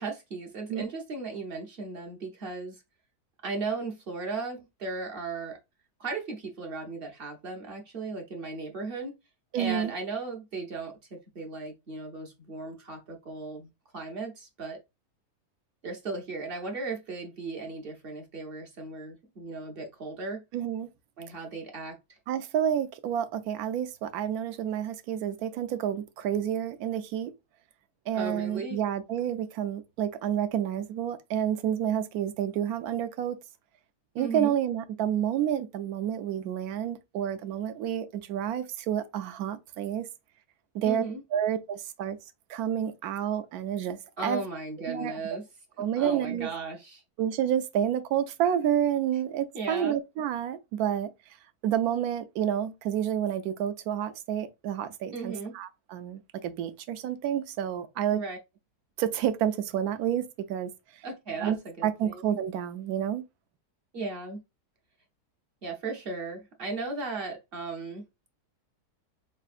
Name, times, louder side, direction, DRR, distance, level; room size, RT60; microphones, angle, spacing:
voice 1, 0.0-2.8 3.4-5.6 6.0-9.1 9.6-13.7 13.9-14.8 15.8-20.4 21.2-22.2 28.1-28.8 34.2-34.5 40.8-41.2 44.2-45.5 46.0-47.0 49.5-50.0 55.1-55.5 58.1-58.4 61.0-62.4 63.9-64.4 65.6-68.0, right 3 dB, 45° right, 0.8 m, -36 dB
voice 2, 9.5-9.9 20.5-20.9 22.3-27.3 28.1-33.4 34.1-40.1 40.7-41.0 41.3-42.2 42.5-44.4 44.9-45.1 45.8-46.5 47.2-51.1 51.6-58.2 59.0-60.7 61.4-61.6 61.8-63.2, right 10 dB, 75° right, 1.0 m, -29 dB
4.5 x 3.4 x 2.4 m
omnidirectional pair, 1.7 m